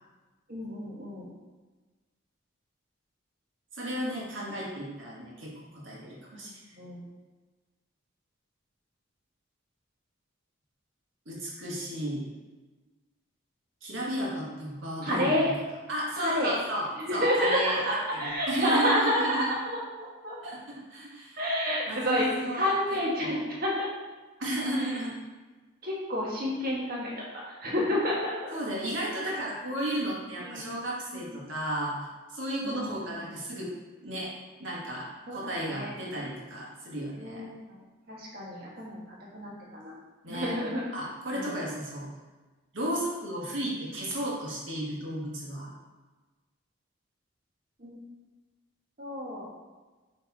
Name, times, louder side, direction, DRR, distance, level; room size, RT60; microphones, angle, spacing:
voice 1, 0.5-1.3 6.3-6.5 6.7-7.0 15.0-15.5 16.2-16.6 17.0-19.4 20.0-20.4 21.4-23.9 25.8-27.1 27.4-28.5 30.4-30.6 31.1-31.2 32.6-33.0 35.3-35.9 37.1-37.8 38.1-39.0 39.3-39.9 40.3-40.8 41.3-41.5 47.8-48.0 49.0-49.5, equal, 45° right, -5 dB, 1.6 m, -29 dB
voice 2, 3.7-6.5 11.3-12.3 13.8-15.5 15.9-16.9 17.1-19.5 20.4-21.4 21.9-23.4 24.4-25.1 28.5-32.0 32.3-33.7 34.0-34.3 34.6-37.4 40.2-40.5 40.9-42.1 42.7-45.7, right 1 dB, 65° right, -4 dB, 1.8 m, -33 dB
6.6 x 3.6 x 4.2 m, 1.3 s
head